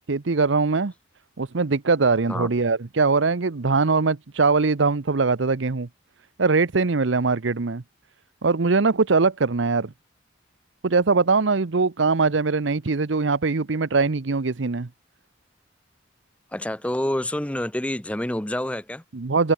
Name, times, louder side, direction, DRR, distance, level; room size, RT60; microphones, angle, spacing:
voice 1, 0.1-0.9 1.4-5.9 6.4-7.8 8.4-9.9 10.8-14.9 19.1-19.5, right 4 dB, 75° right, 0.8 m, -21 dB
voice 2, 16.5-19.0, left 1 dB, 5° left, 0.6 m, -27 dB
open air
head